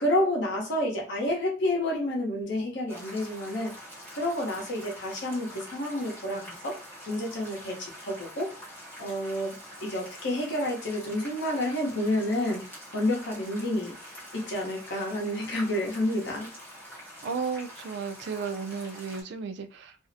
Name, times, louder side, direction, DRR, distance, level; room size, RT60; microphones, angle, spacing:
voice 1, 0.0-3.8 4.1-6.8 7.1-8.5 9.0-14.0 14.3-16.5, left 1 dB, 60° left, 0.8 m, -29 dB
sound 1, 2.9-19.2, equal, 10° left, 1.0 m, -45 dB
voice 2, 17.2-20.0, right 5 dB, 60° right, 0.3 m, -34 dB
2.5 x 2.0 x 2.6 m
head